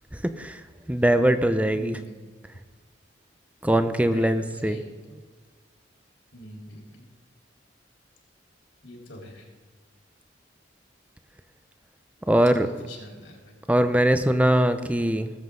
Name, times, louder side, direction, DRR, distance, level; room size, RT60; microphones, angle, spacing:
voice 1, 0.1-2.0 3.6-4.8 12.3-12.7 13.7-15.3, right 1 dB, 10° right, 10 dB, 0.6 m, -22 dB
voice 2, 1.7-2.1 3.7-5.2 6.3-7.1 8.8-9.5 12.6-13.5, left 1 dB, 80° left, -2 dB, 3.6 m, -44 dB
19.0 x 7.8 x 3.8 m, 1.5 s
head